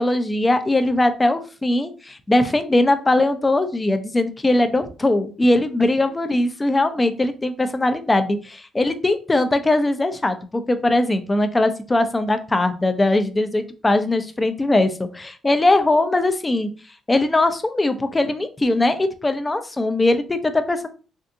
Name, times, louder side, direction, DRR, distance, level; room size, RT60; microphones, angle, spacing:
voice 1, 0.0-16.7 17.1-20.9, left 2 dB, 20° left, 9 dB, 0.4 m, -20 dB
3.5 x 2.5 x 2.7 m, 0.36 s
cardioid pair, 90°, 0 cm